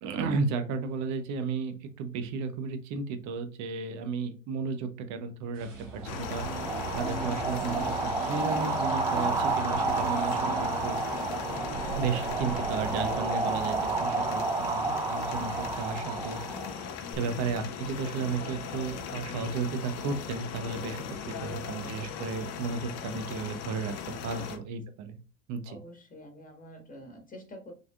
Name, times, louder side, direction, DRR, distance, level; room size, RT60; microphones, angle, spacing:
voice 1, 0.0-6.5 6.9-11.0 11.9-16.9 17.2-25.2 25.5-25.8, right 5 dB, 45° right, 8 dB, 1.0 m, -34 dB
sound 1, 5.5-13.1, right 6 dB, 70° right, 1.6 m, -42 dB
sound 2, 6.0-24.6, left 7 dB, 40° left, 1.0 m, -39 dB
sound 3, 6.0-17.1, right 3 dB, 10° right, 0.4 m, -31 dB
voice 2, 25.6-27.7, equal, 20° left, 2 dB, 1.6 m, -47 dB
5.8 x 3.6 x 2.4 m, 0.34 s
hypercardioid pair, 85°, 39 cm